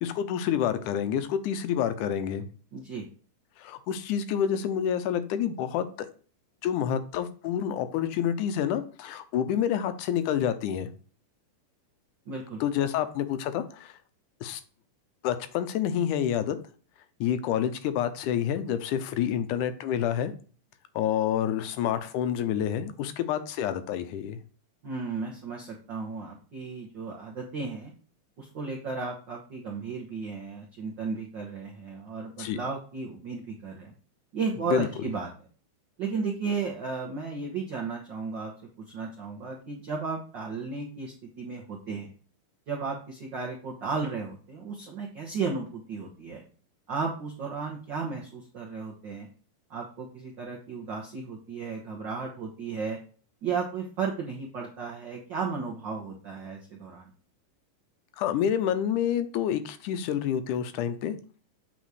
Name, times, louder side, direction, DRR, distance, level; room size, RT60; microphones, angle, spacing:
voice 1, 0.0-2.5 3.6-6.1 6.6-10.9 12.6-14.0 14.4-14.6 15.2-16.6 17.2-20.3 21.0-24.4 32.4-32.6 34.7-34.9 58.2-61.2, left 9 dB, 80° left, 11 dB, 2.1 m, -28 dB
voice 2, 2.7-3.1 12.3-12.6 24.8-27.9 28.4-33.9 34.3-35.3 36.0-38.5 38.9-42.1 42.7-46.4 46.9-49.3 49.7-53.0 53.4-57.1, right 4 dB, 80° right, -1 dB, 1.0 m, -34 dB
8.0 x 4.2 x 4.8 m, 0.40 s
omnidirectional pair, 3.8 m